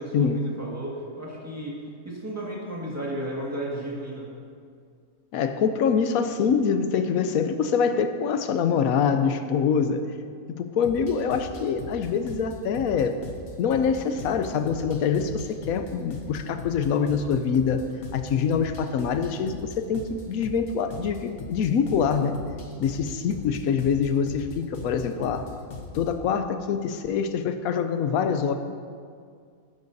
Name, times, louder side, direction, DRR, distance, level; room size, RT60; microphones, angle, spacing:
voice 1, 0.0-1.8 2.0-4.3, right 1 dB, 10° right, -4 dB, 1.7 m, -33 dB
voice 2, 5.3-10.1 10.6-13.2 13.6-17.9 18.1-22.4 22.8-25.5 25.9-28.5, left 6 dB, 75° left, 9 dB, 1.0 m, -25 dB
sound 1, 10.8-26.2, left 3 dB, 45° left, 1.0 m, -40 dB
12.0 x 10.5 x 2.7 m, 2.1 s
omnidirectional pair, 1.6 m